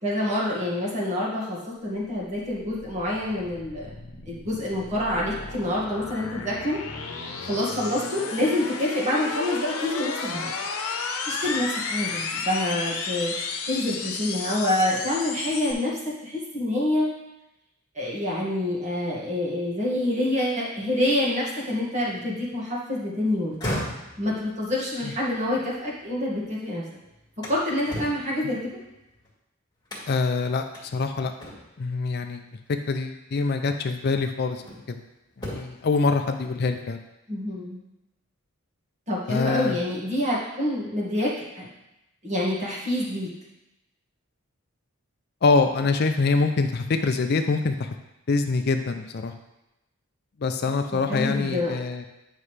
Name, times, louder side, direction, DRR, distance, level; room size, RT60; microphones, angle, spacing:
voice 1, 0.0-3.9 4.3-6.8 7.5-10.5 11.3-13.3 13.7-17.1 18.0-23.6 24.2-26.8 27.4-28.8 37.3-37.8 39.1-41.7 42.2-43.3 51.1-51.8, left 1 dB, 30° right, -5 dB, 1.9 m, -27 dB
sound 1, 2.0-15.7, left 4 dB, 85° left, 0.9 m, -33 dB
sound 2, 23.4-26.5 26.9-29.3 29.9-30.3 30.7-30.9 31.4-31.9 33.1-33.3 33.9-35.0 35.3-35.9, equal, 20° left, 1.9 m, -37 dB
voice 2, 30.1-31.3 31.8-32.4 32.9-34.6 34.9-35.0 35.4-37.0 39.3-39.8 45.4-47.9 48.3-49.3 50.4-52.0, left 4 dB, 45° left, 7 dB, 0.4 m, -24 dB
9.2 x 5.5 x 3.3 m, 0.93 s
head